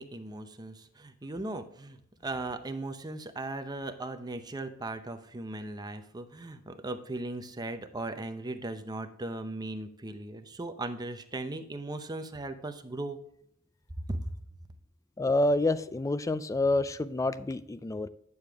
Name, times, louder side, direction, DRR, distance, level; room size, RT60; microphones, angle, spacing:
voice 1, 0.0-2.0 2.2-13.2 14.1-14.2, right 2 dB, 20° right, 8 dB, 0.7 m, -38 dB
voice 2, 15.2-18.1, left 2 dB, 15° left, 15 dB, 0.3 m, -28 dB
9.5 x 6.7 x 3.5 m, 0.70 s
head